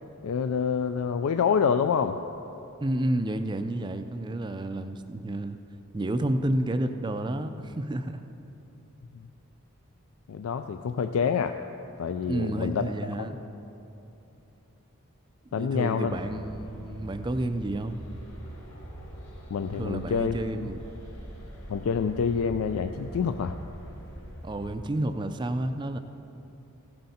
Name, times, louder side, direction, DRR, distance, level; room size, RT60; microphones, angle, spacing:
voice 1, 0.2-2.2 9.1-9.3 10.3-11.6 12.0-12.9 15.5-16.1 19.5-20.6 21.7-23.6, left 6 dB, 75° left, 8 dB, 0.3 m, -27 dB
voice 2, 2.8-5.6 5.9-8.2 12.3-13.4 15.5-18.0 19.8-20.8 24.4-26.0, right 1 dB, 20° right, 8 dB, 0.4 m, -30 dB
sound 1, 16.0-24.7, right 1 dB, 55° left, 2.0 m, -42 dB
16.0 x 7.8 x 4.2 m, 2.9 s
head